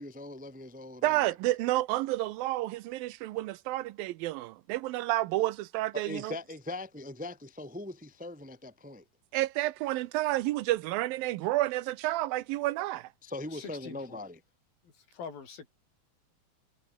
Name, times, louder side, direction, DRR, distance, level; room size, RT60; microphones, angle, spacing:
voice 1, 0.0-1.3 5.9-9.0 13.2-14.4, left 2 dB, 5° right, 1.2 m, -41 dB
voice 2, 1.0-6.4 9.3-13.1, right 17 dB, 80° right, 2.5 m, -30 dB
voice 3, 13.5-14.2 14.8-15.7, left 6 dB, 75° left, 6.4 m, -44 dB
omnidirectional pair, 4.2 m